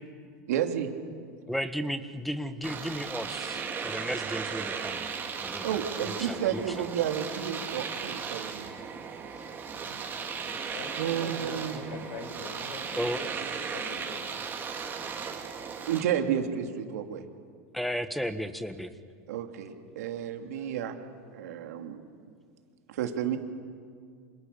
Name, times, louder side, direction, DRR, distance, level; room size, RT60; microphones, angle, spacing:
voice 1, 0.5-0.9 5.6-9.0 9.8-10.7 11.0-11.9 15.9-17.2 19.3-21.0 21.3-22.0 22.9-23.4, right 9 dB, 80° right, 5 dB, 2.9 m, -32 dB
voice 2, 1.5-5.1 5.4-5.8 6.0-6.8 13.0-13.2 17.7-18.9 21.0-21.1, equal, ahead, 11 dB, 1.6 m, -34 dB
Domestic sounds home sounds, 2.6-16.0, right 6 dB, 25° right, 3.7 m, -36 dB
voice 3, 10.7-13.3 13.7-14.2 16.1-16.2, left 4 dB, 70° left, 5 dB, 6.9 m, -43 dB
28.5 x 27.0 x 7.0 m, 2.1 s
supercardioid pair, 115°, 8 cm